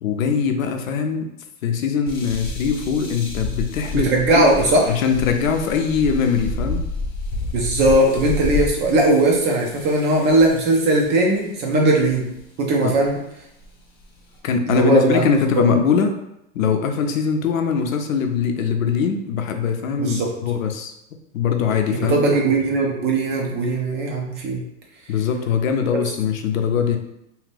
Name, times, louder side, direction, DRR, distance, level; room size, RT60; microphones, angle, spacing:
voice 1, 0.0-1.3 1.6-4.5 4.9-6.8 12.8-12.9 14.4-16.2 16.5-20.9 21.3-22.2 25.1-27.0, left 6 dB, 75° left, 6 dB, 0.6 m, -21 dB
sound 1, 2.1-11.2 12.0-12.4 13.0-13.1 13.6-14.4, left 2 dB, 25° left, 0.7 m, -30 dB
voice 2, 3.9-4.8 7.5-12.3 12.6-13.2 14.7-15.4 20.0-20.3 22.0-24.6, right 2 dB, 25° right, -1 dB, 0.5 m, -18 dB
2.7 x 2.4 x 3.3 m, 0.81 s
hypercardioid pair, 115°, 40 cm